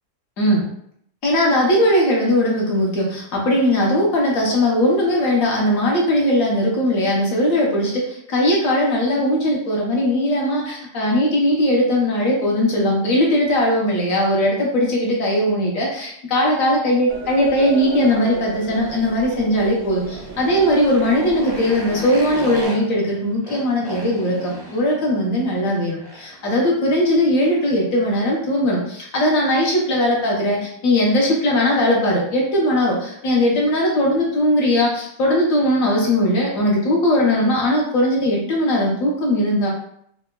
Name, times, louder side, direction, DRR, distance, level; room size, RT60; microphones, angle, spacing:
voice 1, 1.2-39.7, left 1 dB, 60° left, -3 dB, 1.2 m, -19 dB
sound 1, 17.1-22.6, right 4 dB, 85° right, 0.5 m, -35 dB
Motorcycle, 19.9-26.5, equal, 25° right, 0.5 m, -35 dB
4.6 x 2.1 x 2.2 m, 0.68 s
omnidirectional pair, 1.8 m